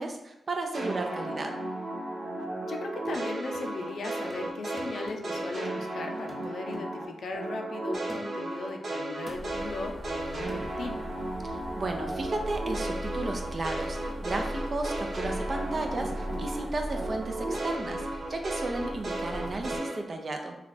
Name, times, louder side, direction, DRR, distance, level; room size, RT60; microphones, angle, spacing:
voice 1, 0.0-1.5 11.4-20.6, right 2 dB, 50° right, 3 dB, 0.6 m, -34 dB
sound 1, 0.7-7.0 7.3-16.6 16.9-19.9, right 1 dB, 70° right, 1.2 m, -34 dB
voice 2, 2.7-11.0, left 3 dB, 75° left, 4 dB, 0.5 m, -38 dB
sound 2, 2.8-3.3 3.5-3.9 4.3-5.7 6.3-6.5 7.0-7.2 8.1-8.5 9.3-9.6 10.5-10.7, equal, 15° right, 0.8 m, -49 dB
sound 3, 9.3-19.8, equal, 20° left, 0.8 m, -39 dB
3.2 x 2.3 x 4.0 m, 0.96 s
cardioid pair, 80°, 0 cm